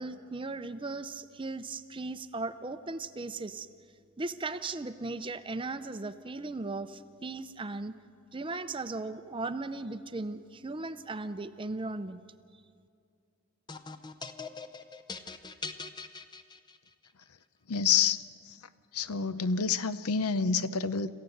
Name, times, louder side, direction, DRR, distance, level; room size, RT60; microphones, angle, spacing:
voice 1, 0.0-3.7 4.2-7.9 8.3-12.2, right 3 dB, 20° right, 11 dB, 0.6 m, -37 dB
sound 1, 13.7-17.1, left 4 dB, 20° left, 0.7 m, -42 dB
voice 2, 17.7-18.6 18.9-21.1, left 6 dB, 80° left, 14 dB, 0.7 m, -28 dB
27.0 x 15.0 x 7.9 m, 2.4 s
head